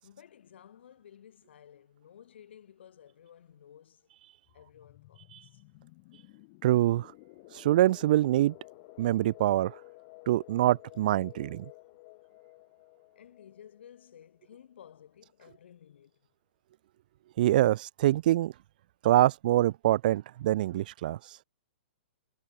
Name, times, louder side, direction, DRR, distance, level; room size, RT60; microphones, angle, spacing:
voice 1, 0.0-4.2 4.5-5.6 13.2-16.3, left 9 dB, 65° left, 5.5 m, -55 dB
sound 1, 4.5-15.0, left 27 dB, 35° left, 2.4 m, -54 dB
voice 2, 6.6-7.1 7.5-8.5 9.0-9.7 10.3-11.6 17.4-18.5 19.0-21.2, right 14 dB, 45° right, 0.3 m, -25 dB
hypercardioid pair, 155°, 6 cm